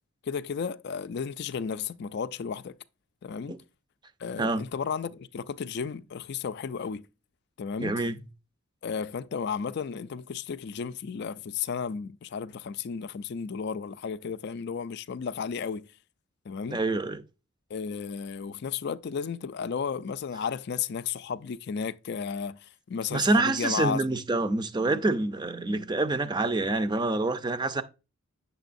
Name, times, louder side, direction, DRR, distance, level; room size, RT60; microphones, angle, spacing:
voice 1, 0.3-2.7 3.2-3.6 4.2-7.0 7.6-8.0 8.8-15.9 16.5-16.8 17.7-22.6 22.9-24.0, left 6 dB, 50° left, 0.4 m, -33 dB
voice 2, 7.8-8.2 16.7-17.2 23.1-27.8, right 2 dB, 20° right, 0.5 m, -26 dB
9.0 x 6.9 x 2.6 m
head